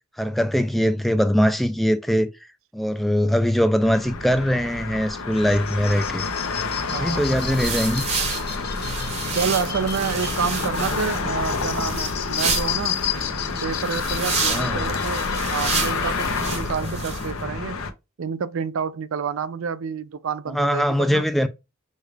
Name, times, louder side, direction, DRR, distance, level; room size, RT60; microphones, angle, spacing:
voice 1, 0.2-2.3 2.7-6.3 6.9-8.1 14.5-14.9 20.5-21.5, equal, ahead, 0.4 m, -21 dB
sound 1, 3.8-17.9, left 4 dB, 85° left, 0.8 m, -29 dB
sound 2, 5.3-16.6, left 9 dB, 50° left, 1.0 m, -33 dB
voice 2, 6.9-7.3 9.3-13.0 13.6-17.9 18.2-21.3, right 6 dB, 70° right, 0.5 m, -29 dB
sound 3, 7.1-17.3, right 4 dB, 30° right, 0.9 m, -30 dB
6.3 x 2.4 x 3.3 m
head